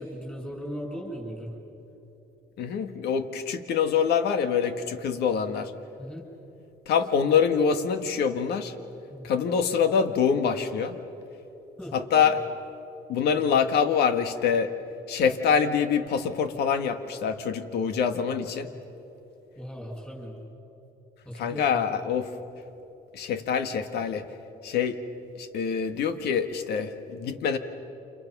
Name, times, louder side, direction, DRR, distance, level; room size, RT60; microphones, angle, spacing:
voice 1, 0.0-1.5 6.0-6.2 9.1-9.3 11.8-11.9 19.5-20.4 21.2-21.8, equal, 5° left, -2 dB, 6.9 m, -37 dB
voice 2, 2.6-5.7 6.9-8.7 9.2-10.9 11.9-12.4 13.1-14.7 15.1-18.7 21.3-22.3 23.1-24.2 24.6-25.0 25.4-27.6, left 7 dB, 75° left, 8 dB, 1.7 m, -25 dB
29.5 x 27.5 x 6.1 m, 3.0 s
cardioid pair, 110°, 17 cm